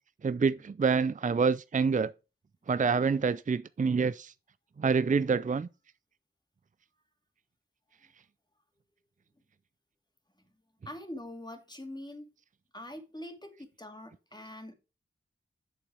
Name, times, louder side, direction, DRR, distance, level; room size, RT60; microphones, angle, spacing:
voice 1, 0.2-2.1 2.7-4.3 4.8-5.7, right 5 dB, 40° right, 0.4 m, -27 dB
voice 2, 10.8-12.3 12.7-14.7, left 1 dB, 20° left, 2.4 m, -44 dB
8.3 x 6.8 x 4.9 m
wide cardioid pair, 50°, 21 cm